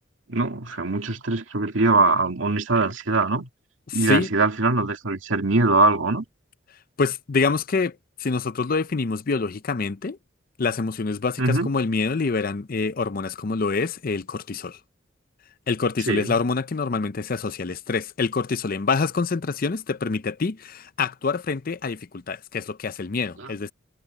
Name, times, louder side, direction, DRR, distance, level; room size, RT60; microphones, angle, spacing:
voice 1, 0.3-3.5 3.9-6.2 11.4-11.7 16.1-16.4 23.4-23.5, right 3 dB, 85° right, 2.3 m, -22 dB
voice 2, 3.9-4.3 7.0-10.2 10.6-14.8 15.7-23.7, left 4 dB, 50° left, 0.6 m, -26 dB
head